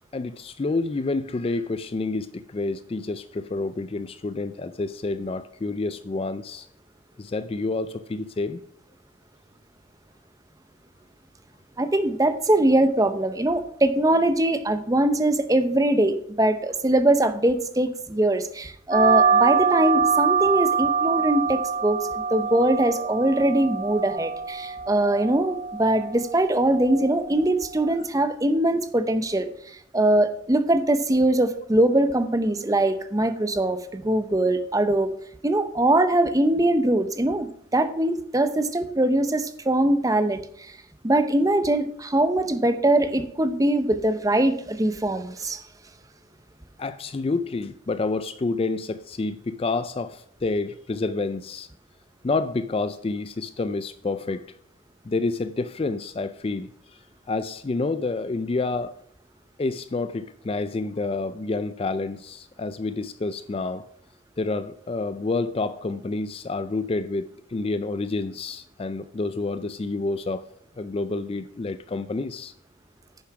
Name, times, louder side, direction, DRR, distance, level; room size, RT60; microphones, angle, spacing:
voice 1, 0.1-6.7 7.2-8.6 46.8-51.7 52.2-54.5 55.1-57.0 57.3-59.0 59.6-63.8 64.4-70.4 70.8-72.5, left 3 dB, 30° left, 0.3 m, -28 dB
voice 2, 11.8-29.5 29.9-35.1 35.4-40.7 41.0-45.6, right 1 dB, 15° right, 0.7 m, -22 dB
sound 1, 18.9-28.0, right 6 dB, 35° right, 2.6 m, -25 dB
9.6 x 7.0 x 5.8 m
head